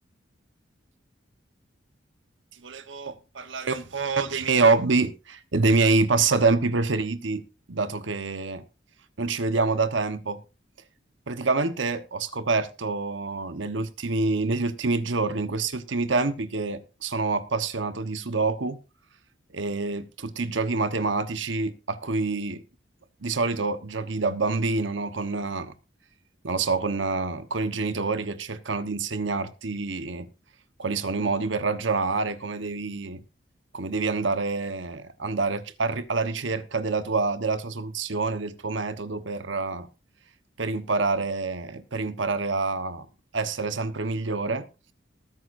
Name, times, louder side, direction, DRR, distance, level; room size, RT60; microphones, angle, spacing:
voice 1, 2.6-7.4 7.7-8.6 9.2-10.4 11.3-18.8 19.5-22.6 23.2-25.7 26.4-30.3 30.8-33.2 33.7-39.9 40.6-43.1 43.3-44.7, right 3 dB, 80° right, 1.1 m, -26 dB
19.5 x 9.4 x 2.6 m
head